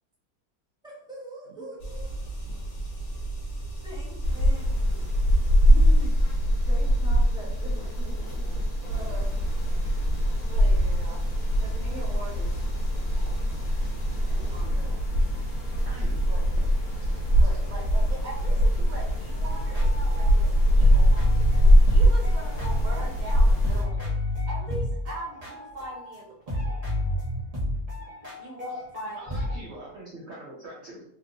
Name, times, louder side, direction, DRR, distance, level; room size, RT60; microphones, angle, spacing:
voice 1, 0.8-2.6 3.0-3.1 3.7-4.7 6.6-8.4 14.1-15.0, right 1 dB, 5° right, -7 dB, 0.9 m, -44 dB
sound 1, 1.8-14.6, right 2 dB, 45° left, 0.8 m, -38 dB
sound 2, 4.2-23.8, equal, 70° left, 1.4 m, -22 dB
voice 2, 4.6-5.0 5.3-6.1 8.8-9.3 10.1-11.2 11.6-12.7 13.1-13.4 14.8-15.0 15.5-15.6 16.3-16.4 17.4-24.1 24.5-27.1 28.0-28.1 28.4-29.2, right 1 dB, 90° right, -3 dB, 0.4 m, -41 dB
voice 3, 15.8-16.2 17.0-17.2 17.5-17.6 29.2-31.0, right 1 dB, 65° right, -4 dB, 0.7 m, -43 dB
sound 3, 19.4-23.3 23.6-26.2 26.5-29.6, left 1 dB, 25° right, 1.0 m, -31 dB
3.4 x 2.8 x 2.5 m, 0.72 s
omnidirectional pair, 1.7 m